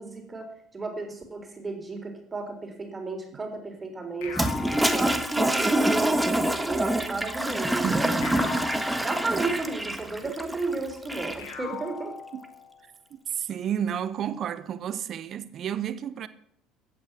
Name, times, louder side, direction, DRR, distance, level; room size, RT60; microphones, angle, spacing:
voice 1, 0.0-4.4 4.8-8.1 9.0-12.1, right 3 dB, 20° right, 3.9 m, -33 dB
sound 1, 4.2-5.8 8.2-9.8 11.4-12.9, left 6 dB, 65° left, 2.7 m, -39 dB
Toilet flush, 4.3-11.5, right 1 dB, 5° right, 1.4 m, -26 dB
voice 2, 7.8-8.7 10.2-10.3 12.3-12.5 13.1-16.3, right 9 dB, 45° right, 0.7 m, -32 dB
15.0 x 9.3 x 6.1 m
figure-of-eight pair, 60°, 0 cm